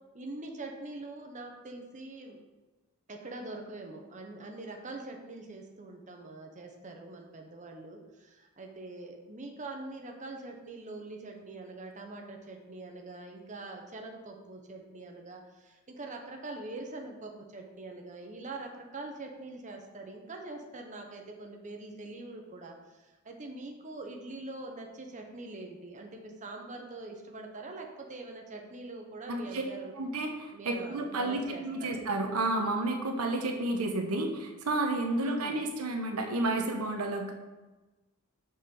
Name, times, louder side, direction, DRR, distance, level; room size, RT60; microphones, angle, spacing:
voice 1, 0.1-2.4 3.1-29.9 30.5-32.0 35.2-35.6, right 2 dB, 35° right, 2 dB, 1.1 m, -44 dB
voice 2, 29.3-29.6 30.0-37.3, right 2 dB, 85° right, 3 dB, 1.2 m, -31 dB
7.2 x 6.8 x 5.5 m, 1.2 s
head